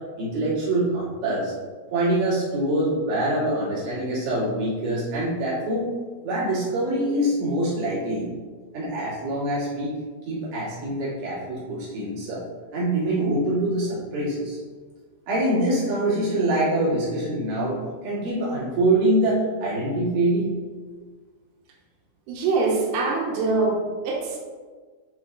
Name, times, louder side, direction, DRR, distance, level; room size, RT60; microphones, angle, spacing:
voice 1, 0.2-1.5 1.9-5.9 6.2-8.3 8.7-9.9 10.3-12.4 12.7-14.6 15.3-20.5, right 1 dB, 45° right, -8 dB, 2.4 m, -24 dB
voice 2, 22.3-24.4, right 3 dB, 85° right, -1 dB, 2.9 m, -24 dB
7.0 x 3.8 x 3.7 m, 1.5 s
omnidirectional pair, 4.7 m